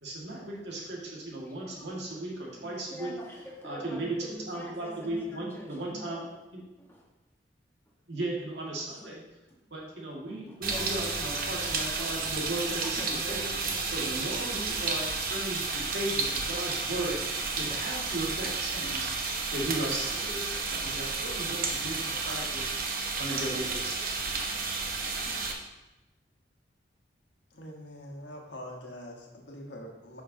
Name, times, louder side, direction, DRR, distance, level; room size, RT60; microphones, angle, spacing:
voice 1, 0.0-3.1 3.6-4.2 4.5-6.2 6.5-6.6 8.1-9.2 9.7-13.4 13.9-17.2 17.6-19.1 19.5-20.5 20.8-22.7 23.2-24.2, right 1 dB, 70° right, -3 dB, 2.0 m, -36 dB
voice 2, 1.4-1.9 2.5-6.3 6.8-7.1 8.7-9.2 9.5-9.7 10.3-11.3 11.5-11.8 12.2-14.5 17.6-17.8 20.7-20.8, equal, 10° left, -3 dB, 1.3 m, -45 dB
sound 1, 10.6-25.5, right 4 dB, 50° right, 0.8 m, -32 dB
voice 3, 27.5-30.2, equal, 75° left, 0 dB, 1.3 m, -44 dB
9.0 x 5.8 x 2.8 m, 1.0 s
head